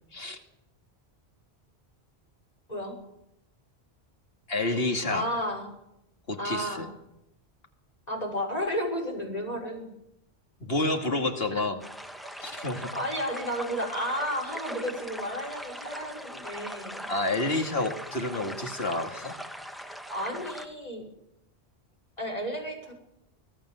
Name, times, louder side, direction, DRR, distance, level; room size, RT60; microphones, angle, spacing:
voice 1, 4.5-5.3 6.3-6.9 10.6-11.8 12.4-12.9 17.1-19.4, left 2 dB, 65° left, 5 dB, 2.6 m, -29 dB
voice 2, 5.1-5.7 6.4-6.8 8.1-9.9 11.5-11.6 12.6-12.7 12.9-17.1 20.1-21.0 22.2-22.9, equal, 35° left, 2 dB, 6.4 m, -32 dB
sound 1, 11.8-20.7, equal, ahead, 1.8 m, -40 dB
25.0 x 17.0 x 7.8 m, 0.84 s
omnidirectional pair, 1.1 m